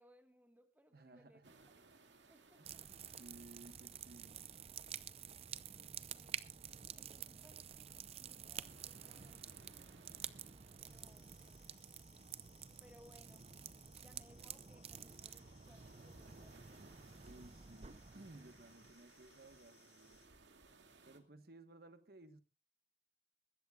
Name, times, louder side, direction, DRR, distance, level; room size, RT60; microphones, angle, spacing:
voice 1, 0.0-1.4 2.1-2.8 6.0-6.6 6.9-11.4 12.8-13.5 14.0-16.8, equal, 10° right, 1.5 m, -67 dB
voice 2, 0.9-1.7 2.6-4.8 16.2-20.2 21.0-22.4, right 2 dB, 55° right, 1.3 m, -59 dB
sound 1, 1.4-21.2, right 3 dB, 85° right, 2.2 m, -66 dB
sound 2, 2.6-18.9, right 8 dB, 35° right, 0.6 m, -51 dB
sound 3, 10.8-20.3, left 7 dB, 35° left, 4.0 m, -70 dB
21.5 x 15.5 x 2.4 m
head